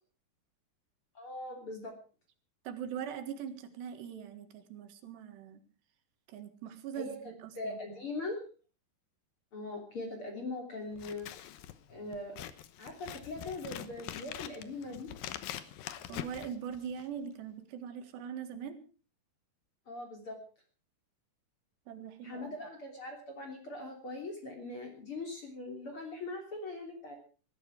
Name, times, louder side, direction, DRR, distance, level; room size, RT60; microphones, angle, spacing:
voice 1, 1.2-2.0 6.9-7.2 7.6-8.4 9.5-11.3 11.9-12.4 12.8-15.1 19.9-20.4 22.2-27.1, left 2 dB, 35° left, 2 dB, 3.5 m, -41 dB
voice 2, 2.7-5.6 6.3-7.8 16.1-18.8 21.9-22.5, right 8 dB, 75° right, 9 dB, 3.9 m, -42 dB
Scissors, 10.9-17.2, left 12 dB, 70° left, 2.4 m, -44 dB
20.0 x 14.0 x 4.8 m, 0.38 s
omnidirectional pair, 4.9 m